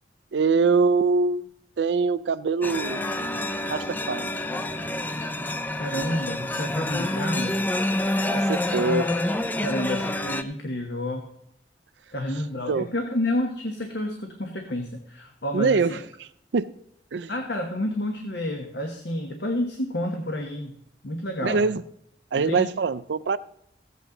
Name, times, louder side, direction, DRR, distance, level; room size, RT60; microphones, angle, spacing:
voice 1, 0.3-1.4 1.8-3.0 3.7-4.2 8.3-9.1 12.7-12.9 15.5-16.0 16.5-16.7 17.1-17.3 21.4-21.8 22.3-23.4, right 4 dB, 90° right, 14 dB, 0.5 m, -23 dB
sound 1, 2.6-10.4, left 1 dB, 10° left, 0.4 m, -27 dB
voice 2, 5.8-7.6 9.6-11.2 12.1-16.0 17.3-20.7 21.0-21.7 22.3-22.7, left 1 dB, 75° left, 3 dB, 1.2 m, -30 dB
15.5 x 8.2 x 3.9 m, 0.73 s
head